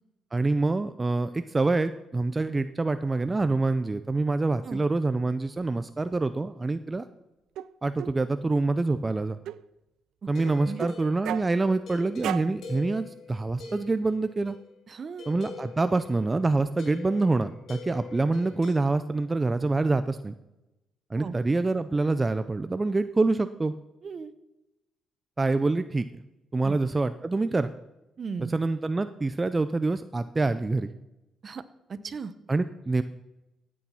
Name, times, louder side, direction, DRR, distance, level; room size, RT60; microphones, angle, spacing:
voice 1, 0.3-7.1 7.8-9.4 10.3-14.6 15.3-20.3 21.1-23.7 25.4-26.0 26.5-27.7 28.5-30.9 32.5-33.0, right 3 dB, 20° right, 11 dB, 0.5 m, -26 dB
sound 1, 7.5-7.7 8.0-8.1 9.4-9.6 10.4-10.9 11.2-11.5 12.2-12.5, right 12 dB, 80° right, 0.4 m, -33 dB
sound 2, 10.3-14.7 15.2-18.7, left 4 dB, 65° left, 3.8 m, -44 dB
voice 2, 14.9-15.3 21.1-21.3 24.0-24.3 26.6-26.8 28.2-28.5 31.4-31.6 31.9-32.3, right 5 dB, 45° right, 14 dB, 0.9 m, -36 dB
16.0 x 8.6 x 5.7 m, 0.97 s
cardioid pair, 90°, 0 cm